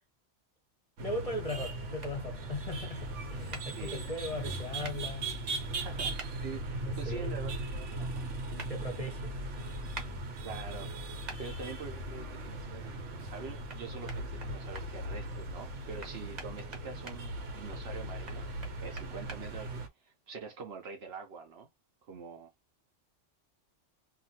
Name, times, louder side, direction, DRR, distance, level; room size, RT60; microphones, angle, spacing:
voice 1, 1.0-5.3 6.8-7.4 8.5-9.3, left 1 dB, 35° left, 0.8 m, -38 dB
sound 1, 1.0-19.9, right 1 dB, 85° right, 1.2 m, -39 dB
sound 2, 2.0-2.1 3.5-3.6 4.8-5.0 6.2-6.3 8.6-8.7 9.9-10.1 11.3-11.4 13.7-13.8 14.1-14.9 16.0-17.2 18.3-19.4, right 3 dB, 40° right, 0.9 m, -44 dB
voice 2, 3.7-4.1 5.8-8.2 8.6-8.7 10.4-10.9 11.4-18.5 18.8-21.7 22.0-22.5, right 5 dB, 60° right, 0.9 m, -45 dB
2.5 x 2.5 x 2.7 m
omnidirectional pair, 1.2 m